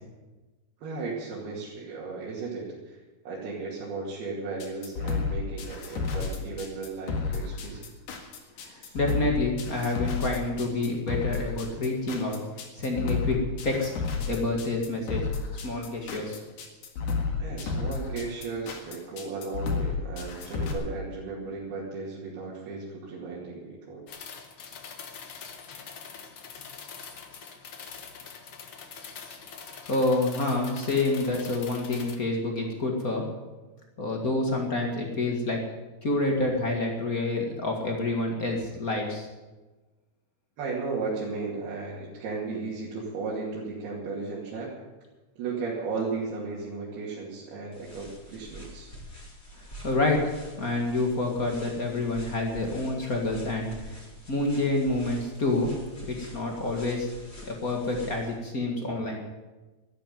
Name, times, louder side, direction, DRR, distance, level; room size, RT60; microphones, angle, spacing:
voice 1, 0.8-3.0 3.3-7.9 8.8-9.0 17.4-24.0 40.6-44.7 45.4-48.9, right 4 dB, 75° right, -6 dB, 4.3 m, -35 dB
sound 1, 4.6-20.7, left 4 dB, 85° left, 3.9 m, -31 dB
voice 2, 8.7-12.4 12.8-13.9 14.3-15.3 15.6-16.4 29.9-33.3 34.0-35.6 36.0-39.3 49.8-50.3 50.6-53.7 54.3-55.7 56.0-57.1 57.4-59.2, left 2 dB, 35° left, 1 dB, 1.4 m, -28 dB
sound 2, 24.1-32.2, left 6 dB, 65° left, 1.3 m, -44 dB
sound 3, 47.7-58.3, equal, 15° left, 4.9 m, -46 dB
13.0 x 10.5 x 9.4 m, 1.2 s
omnidirectional pair, 4.5 m